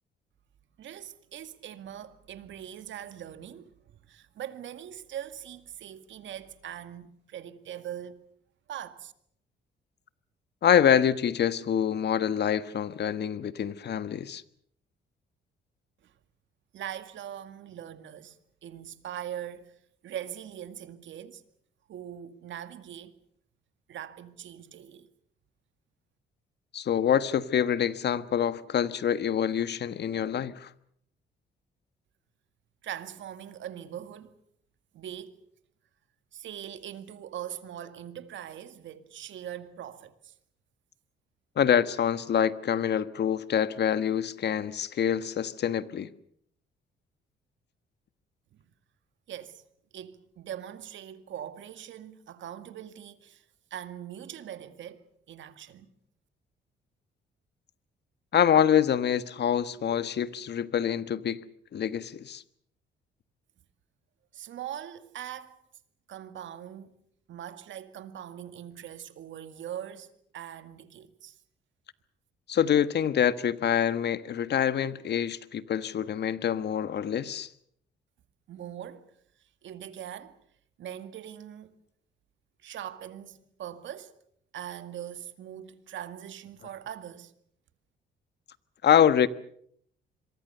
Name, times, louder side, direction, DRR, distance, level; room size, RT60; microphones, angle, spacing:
voice 1, 0.8-3.7 4.1-8.2 8.7-9.1 16.0-16.1 16.7-18.4 18.6-19.7 20.0-21.4 21.9-23.2 23.9-25.1 32.8-34.3 34.9-35.4 36.3-40.3 49.3-49.6 49.9-53.4 53.7-55.9 64.3-65.6 66.1-66.9 67.3-71.4 78.5-79.1 79.6-80.4 80.8-81.7 82.6-84.1 84.5-87.3, right 10 dB, 70° right, 2.0 m, -41 dB
voice 2, 10.6-14.4 26.7-30.7 41.6-46.1 58.3-61.4 61.7-62.4 72.5-77.5 88.8-89.3, left 9 dB, 60° left, 1.4 m, -26 dB
26.5 x 23.0 x 6.8 m
cardioid pair, 90°, 20 cm